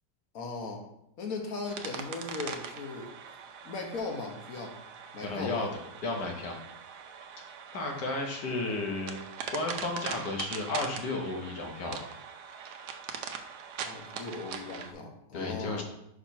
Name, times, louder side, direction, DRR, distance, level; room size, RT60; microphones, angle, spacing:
voice 1, 0.3-0.8 1.2-3.1 3.6-4.8 5.1-5.7 8.7-8.8 13.8-15.8, left 3 dB, 55° left, 2 dB, 1.4 m, -38 dB
sound 1, 1.6-14.9, right 7 dB, 75° right, 1.2 m, -42 dB
voice 2, 5.2-6.6 7.7-9.2 9.5-12.1 15.3-15.8, left 2 dB, 75° left, 1 dB, 1.8 m, -33 dB
5.2 x 4.4 x 5.5 m, 0.79 s
omnidirectional pair, 1.9 m